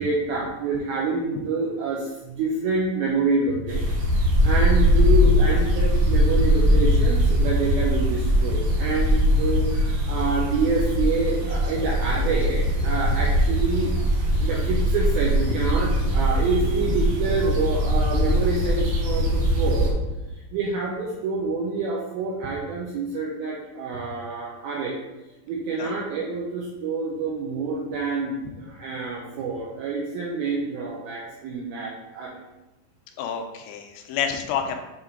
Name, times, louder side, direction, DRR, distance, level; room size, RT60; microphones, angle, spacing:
voice 1, 0.0-3.9 4.4-13.9 14.4-19.9 20.5-25.0 25.5-32.4, right 4 dB, 90° right, -3 dB, 2.1 m, -27 dB
sound 1, 3.7-19.9, equal, 65° right, 1.7 m, -21 dB
voice 2, 33.2-34.8, left 8 dB, 80° left, 5 dB, 2.7 m, -29 dB
8.2 x 4.0 x 3.7 m, 1.1 s
omnidirectional pair, 5.4 m